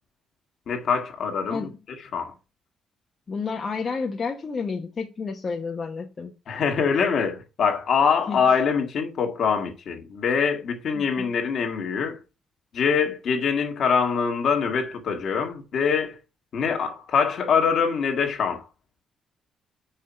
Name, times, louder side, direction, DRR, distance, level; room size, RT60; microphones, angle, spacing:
voice 1, 0.7-1.7 2.1-2.3 6.5-12.2 12.7-16.2 16.5-18.7, left 6 dB, 60° left, 1.8 m, -24 dB
voice 2, 3.3-6.3 8.3-8.4 10.9-11.3, left 4 dB, 40° left, 1.0 m, -30 dB
5.8 x 4.9 x 5.6 m
cardioid pair, 90°, 0 cm